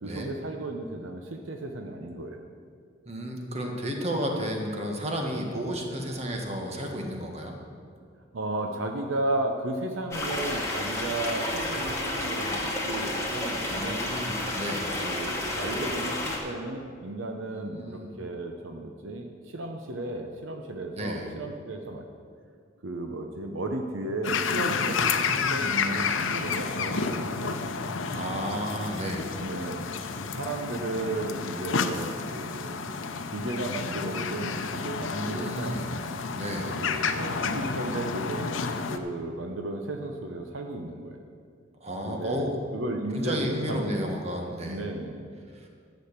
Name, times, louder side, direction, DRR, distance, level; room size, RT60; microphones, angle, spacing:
voice 1, 0.0-2.5 8.3-14.1 15.0-22.1 22.8-27.6 29.4-29.9 30.4-32.9 33.3-36.0 36.8-38.6 38.9-41.2 42.1-42.4 42.7-44.0 44.7-45.3, right 2 dB, 75° right, 4 dB, 0.9 m, -34 dB
voice 2, 3.0-7.5 13.7-14.9 17.5-18.1 20.9-21.3 25.1-25.6 28.1-29.3 35.1-35.8 36.3-36.8 41.8-42.5 43.1-44.9 45.5-45.7, equal, 35° right, 1 dB, 1.6 m, -32 dB
sound 1, 10.1-16.4, left 1 dB, 15° left, 2.2 m, -31 dB
sound 2, 24.2-39.0, left 5 dB, 75° left, 0.7 m, -30 dB
11.5 x 6.4 x 8.2 m, 2.2 s
head